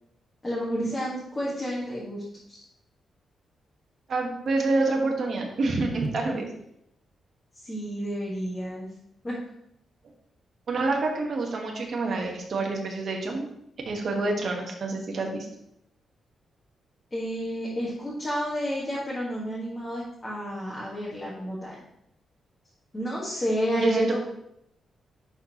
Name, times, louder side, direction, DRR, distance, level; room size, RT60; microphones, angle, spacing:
voice 1, 0.4-2.2 2.5-2.6 7.5-8.9 9.2-9.4 17.1-21.8 22.9-24.2, equal, 15° left, -6 dB, 1.5 m, -30 dB
voice 2, 4.1-6.4 10.7-13.5 13.8-15.5 23.7-24.2, right 3 dB, 45° right, 1 dB, 1.3 m, -27 dB
10.5 x 4.2 x 2.9 m, 0.77 s
wide cardioid pair, 160°, 0 cm